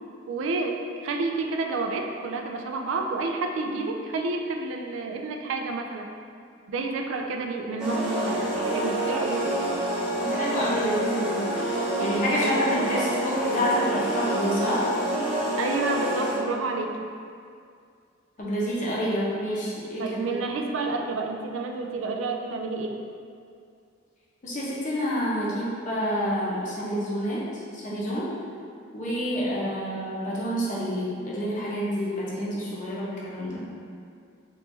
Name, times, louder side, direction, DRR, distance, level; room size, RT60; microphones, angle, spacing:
voice 1, 0.3-0.8 1.0-6.1 6.7-9.5 12.3-12.7 15.6-17.0 20.0-23.0, right 3 dB, 80° right, 3 dB, 0.3 m, -29 dB
sound 1, 7.8-16.5, right 1 dB, 5° right, 0.6 m, -27 dB
voice 2, 10.2-11.4 12.0-14.9 18.4-20.4 24.4-27.4 27.7-28.3 28.9-33.7, equal, 40° left, -7 dB, 0.7 m, -28 dB
3.1 x 3.0 x 3.2 m, 2.3 s
head